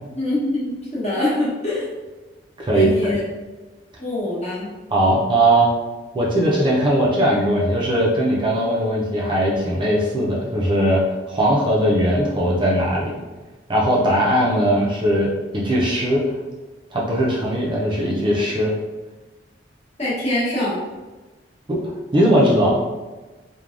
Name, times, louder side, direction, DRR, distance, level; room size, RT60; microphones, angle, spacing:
voice 1, 0.1-1.9 2.7-3.2 4.0-4.7 20.0-20.8, left 1 dB, 40° left, -7 dB, 1.0 m, -24 dB
voice 2, 2.6-3.1 4.9-5.7 6.1-11.0 11.3-13.2 13.7-16.2 16.9-18.7 21.7-22.8, right 1 dB, 25° right, -4 dB, 0.4 m, -19 dB
3.2 x 2.2 x 2.4 m, 1.2 s
head